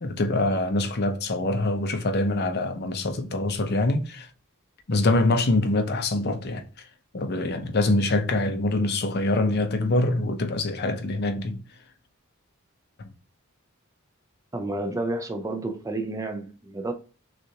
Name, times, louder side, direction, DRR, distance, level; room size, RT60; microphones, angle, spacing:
voice 1, 0.0-4.3 4.9-6.7 7.1-11.6 13.0-13.1, left 2 dB, 50° left, 0.7 m, -24 dB
voice 2, 14.5-16.9, right 2 dB, 15° right, 0.5 m, -30 dB
6.3 x 2.5 x 2.8 m
head